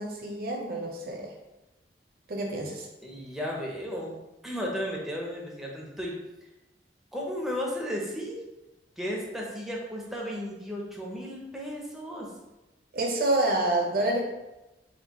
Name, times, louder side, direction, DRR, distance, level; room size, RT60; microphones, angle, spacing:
voice 1, 0.0-1.3 2.3-2.9 12.9-14.2, right 2 dB, 55° right, 0 dB, 0.7 m, -28 dB
voice 2, 3.0-4.2 4.4-6.1 7.1-8.4 9.0-12.3, equal, ahead, -2 dB, 0.6 m, -34 dB
4.3 x 2.3 x 2.9 m, 0.99 s
head